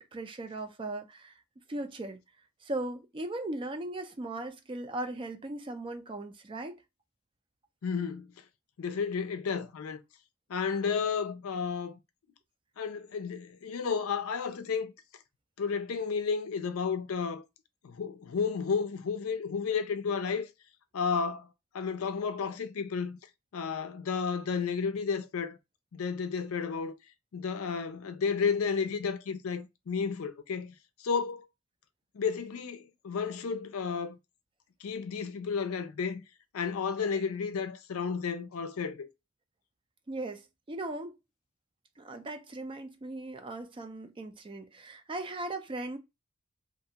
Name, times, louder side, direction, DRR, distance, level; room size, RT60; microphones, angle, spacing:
voice 1, 0.0-1.4 1.7-2.2 2.6-6.8 40.1-41.2 42.0-46.0, right 2 dB, 25° right, 0.4 m, -38 dB
voice 2, 7.8-8.3 8.8-10.0 10.5-12.0 12.8-14.9 15.6-17.4 17.8-20.5 20.9-21.5 21.7-23.2 23.5-25.6 25.9-27.0 27.3-30.7 31.0-31.5 32.1-34.2 34.8-36.2 36.5-39.1, left 5 dB, 75° left, 0.4 m, -32 dB
2.5 x 2.3 x 2.8 m
head